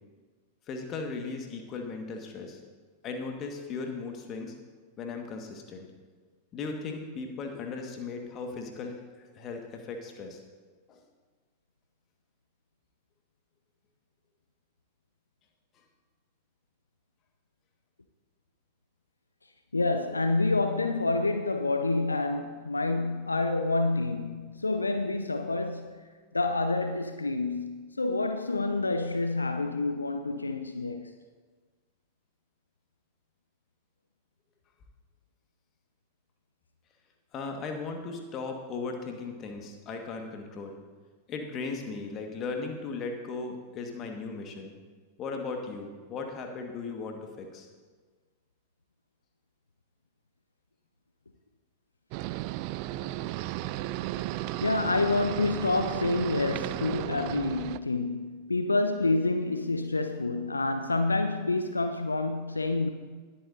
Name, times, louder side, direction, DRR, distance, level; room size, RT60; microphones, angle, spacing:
voice 1, 0.7-2.6 3.0-4.5 5.0-5.9 6.5-9.0 9.3-10.4 10.9-11.0 37.3-40.8 41.3-44.7 45.2-47.7, left 4 dB, 30° left, 1.6 m, -37 dB
voice 2, 19.7-31.1 54.6-62.9, left 2 dB, 80° left, 0.5 m, -28 dB
sound 1, 52.1-57.8, right 15 dB, 45° right, 0.3 m, -34 dB
19.5 x 8.7 x 2.7 m
figure-of-eight pair, 90°, 0 cm